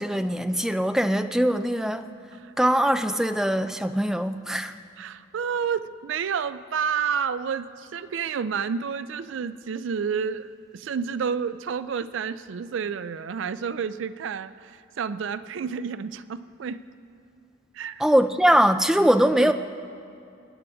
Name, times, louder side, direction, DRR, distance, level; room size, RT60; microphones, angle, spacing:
voice 1, 0.0-2.1 2.6-4.7 18.0-19.5, equal, ahead, 8 dB, 0.3 m, -22 dB
voice 2, 5.0-16.8 17.7-18.0 19.3-19.5, right 6 dB, 75° right, 14 dB, 0.4 m, -30 dB
25.0 x 9.8 x 3.5 m, 2.6 s
head